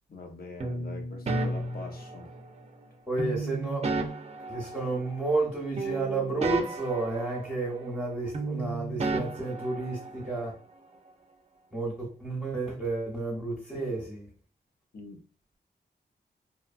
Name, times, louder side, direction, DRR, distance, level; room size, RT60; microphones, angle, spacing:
voice 1, 0.1-2.3 14.9-15.2, left 3 dB, 60° left, 3 dB, 0.6 m, -44 dB
sound 1, 0.6-2.6 3.2-5.5 5.8-8.1 8.3-10.4, right 3 dB, 40° right, 0.4 m, -33 dB
voice 2, 3.1-3.9 4.5-10.5 11.7-14.3, right 2 dB, 5° right, -6 dB, 0.9 m, -31 dB
2.9 x 2.2 x 2.4 m, 0.39 s
wide cardioid pair, 85°, 17 cm